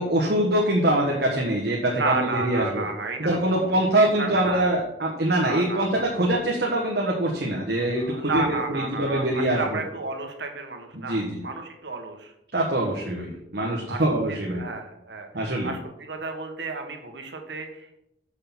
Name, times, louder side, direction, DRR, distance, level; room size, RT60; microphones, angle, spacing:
voice 1, 0.0-2.8 3.2-9.8 10.9-11.4 12.5-14.6 15.3-15.7, right 1 dB, 65° right, -1 dB, 1.4 m, -24 dB
voice 2, 1.9-3.2 3.4-3.7 4.0-4.6 5.4-6.3 8.0-12.3 13.9-14.0 14.3-15.3 15.6-17.9, right 3 dB, 80° right, 4 dB, 1.4 m, -32 dB
6.5 x 6.0 x 7.2 m, 0.83 s
head